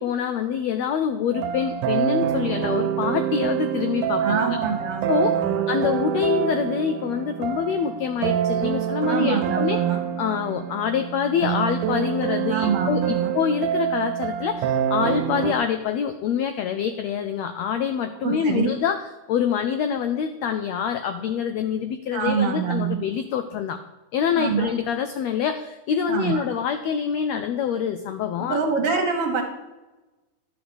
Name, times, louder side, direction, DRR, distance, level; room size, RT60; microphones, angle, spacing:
voice 1, 0.0-4.6 5.1-5.4 5.7-9.8 10.2-19.0 19.3-23.8 24.1-28.6, left 7 dB, 90° left, 9 dB, 1.5 m, -25 dB
sound 1, 1.3-15.5, right 10 dB, 80° right, 2.2 m, -26 dB
voice 2, 4.2-5.6 9.1-10.0 12.5-13.3 18.2-18.7 22.1-23.0 24.4-24.7 26.1-26.4 28.4-29.4, right 6 dB, 55° right, 3 dB, 1.8 m, -25 dB
11.0 x 4.9 x 8.1 m, 1.1 s
omnidirectional pair, 3.7 m